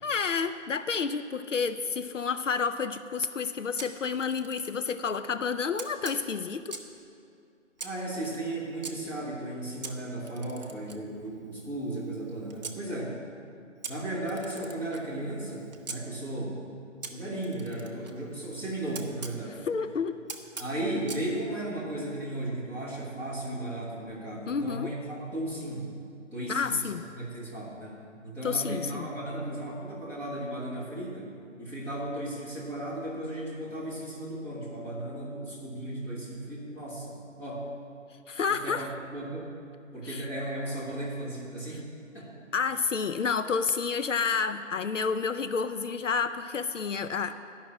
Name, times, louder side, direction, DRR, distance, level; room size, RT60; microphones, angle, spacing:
voice 1, 0.0-6.8 19.7-20.1 24.5-24.9 26.5-27.0 28.4-29.1 38.3-38.8 40.0-40.3 42.5-47.3, left 5 dB, 70° left, 10 dB, 0.6 m, -30 dB
Camera, 3.8-5.0 5.8-7.0 7.8-8.9 9.8-12.8 13.8-16.0 17.0-19.4 20.3-21.3, right 4 dB, 35° right, 0.7 m, -43 dB
voice 2, 7.8-13.2 13.9-16.6 17.0-19.6 20.6-25.9 26.3-31.3 31.6-37.7 38.5-39.5 39.9-41.8 42.1-42.3, right 1 dB, 5° left, -8 dB, 1.4 m, -35 dB
11.5 x 5.9 x 8.5 m, 2.5 s
figure-of-eight pair, 150°, 38 cm